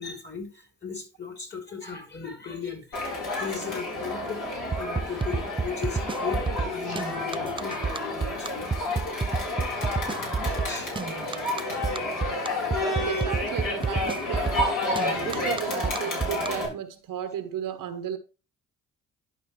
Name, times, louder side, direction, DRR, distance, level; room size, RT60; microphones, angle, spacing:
voice 1, 0.0-4.4 4.8-6.4 6.7-9.0 9.8-9.9 10.4-10.9, left 6 dB, 30° left, 3.2 m, -37 dB
Crowd, 2.9-16.7, left 2 dB, 60° left, 4.4 m, -30 dB
sound 1, 4.7-16.5, right 5 dB, 15° right, 0.4 m, -29 dB
voice 2, 13.0-18.2, right 9 dB, 70° right, 1.1 m, -34 dB
11.0 x 5.4 x 3.2 m
supercardioid pair, 55°, 34 cm